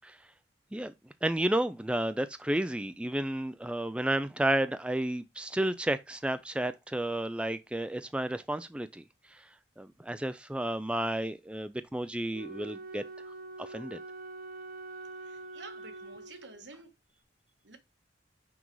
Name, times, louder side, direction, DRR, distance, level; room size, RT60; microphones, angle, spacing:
voice 1, 1.2-9.0 9.3-9.5 9.8-13.0 13.6-14.0, right 1 dB, 5° right, 0.4 m, -32 dB
Wind instrument woodwind instrument, 12.3-16.7, right 2 dB, 55° right, 0.8 m, -44 dB
voice 2, 15.2-16.9 17.6-17.8, right 4 dB, 75° right, 1.5 m, -50 dB
6.1 x 5.3 x 4.6 m
head